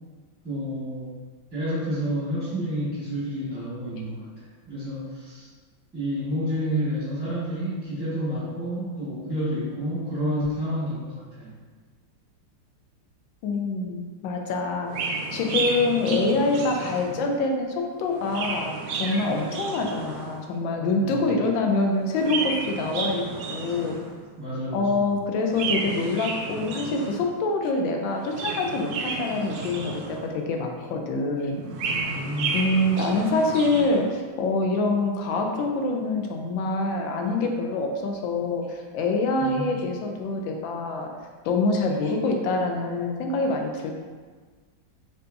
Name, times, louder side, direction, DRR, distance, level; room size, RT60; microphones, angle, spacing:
voice 1, 0.4-1.1 1.5-5.5 5.9-11.5 21.0-21.4 24.4-25.0 32.0-32.6 39.4-39.7, equal, 10° right, -11 dB, 0.7 m, -30 dB
voice 2, 13.4-24.0 24.7-32.2 32.5-41.1 41.4-43.9, left 2 dB, 80° left, 3 dB, 1.3 m, -25 dB
Chirp tweet, 14.9-17.3 18.0-20.5 22.0-24.2 25.4-27.3 28.1-30.4 31.5-34.0, right 4 dB, 75° right, 0.9 m, -32 dB
5.6 x 2.8 x 2.5 m, 1.5 s
omnidirectional pair, 2.1 m